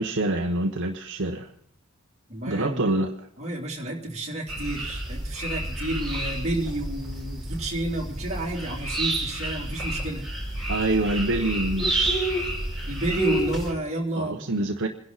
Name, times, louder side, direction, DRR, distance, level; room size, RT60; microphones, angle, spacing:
voice 1, 0.0-1.5 2.5-3.1 10.7-11.9 14.2-14.9, right 2 dB, 55° right, 3 dB, 1.0 m, -25 dB
voice 2, 2.3-2.9 3.4-10.3 12.8-14.5, right 1 dB, 30° right, -2 dB, 3.3 m, -30 dB
sound 1, 4.5-13.7, right 1 dB, ahead, 6.6 m, -29 dB
27.0 x 11.0 x 4.1 m, 0.63 s
head